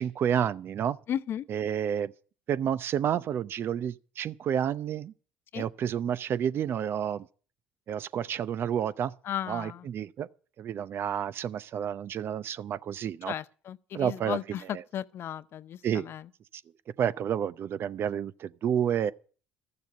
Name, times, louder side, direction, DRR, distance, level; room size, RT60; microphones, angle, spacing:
voice 1, 0.0-1.0 1.5-2.1 2.5-5.1 5.5-7.3 7.9-9.1 9.5-10.3 10.6-13.3 13.9-14.4 14.7-14.8 15.8-16.1 17.0-19.1, right 9 dB, 50° right, 0.7 m, -30 dB
voice 2, 1.1-1.4 5.5-5.7 9.2-9.9 13.3-16.3, left 10 dB, 55° left, 0.6 m, -35 dB
13.5 x 6.9 x 8.4 m
hypercardioid pair, 65°, 5 cm